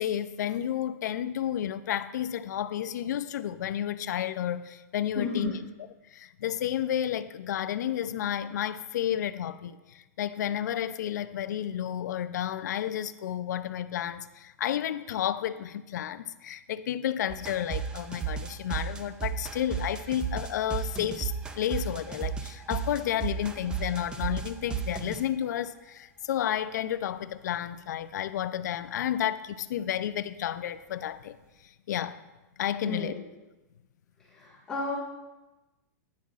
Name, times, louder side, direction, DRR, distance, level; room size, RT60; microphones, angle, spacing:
voice 1, 0.0-5.5 6.1-31.4 31.9-32.2 32.6-33.2, left 10 dB, 75° left, 12 dB, 0.5 m, -31 dB
voice 2, 5.2-5.6 32.8-33.2 34.3-35.0, left 3 dB, 10° left, -10 dB, 1.7 m, -33 dB
sound 1, 17.3-25.2, right 7 dB, 10° right, 0.4 m, -34 dB
9.8 x 9.4 x 2.4 m, 1.1 s
supercardioid pair, 165°, 10 cm